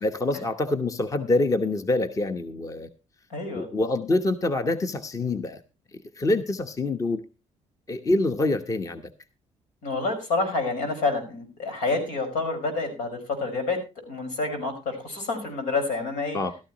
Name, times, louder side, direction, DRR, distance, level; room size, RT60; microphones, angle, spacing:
voice 1, 0.0-2.9 3.5-5.6 6.2-7.2 7.9-9.0 16.3-16.5, left 2 dB, 25° left, 8 dB, 1.0 m, -25 dB
voice 2, 3.3-3.7 9.8-13.8 14.1-16.4, left 3 dB, 85° left, 5 dB, 5.5 m, -28 dB
16.0 x 13.0 x 3.0 m, 0.29 s
cardioid pair, 115°, 13 cm